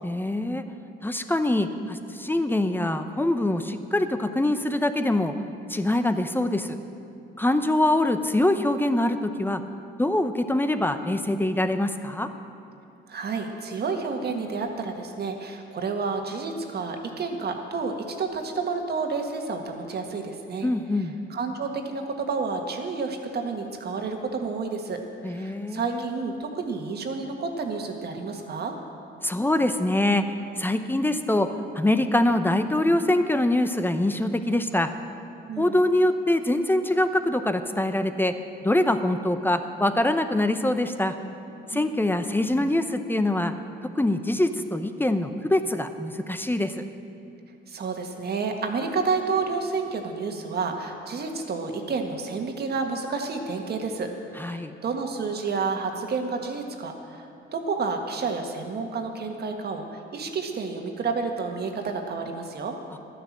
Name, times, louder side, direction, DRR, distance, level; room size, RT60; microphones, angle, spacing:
voice 1, 0.0-0.6 1.0-5.3 5.7-6.7 7.4-9.6 10.0-12.3 20.6-21.1 25.2-26.0 29.2-30.2 30.6-31.5 31.7-34.9 35.6-38.3 38.6-41.1 41.7-43.5 44.0-46.8 54.4-54.7, left 1 dB, 10° left, 9 dB, 0.7 m, -24 dB
voice 2, 13.1-20.7 21.0-25.0 25.2-28.8 35.5-35.8 41.7-41.9 47.7-54.1 54.4-62.7, right 4 dB, 55° right, 4 dB, 1.7 m, -30 dB
12.5 x 10.0 x 7.4 m, 2.7 s
cardioid pair, 90°, 20 cm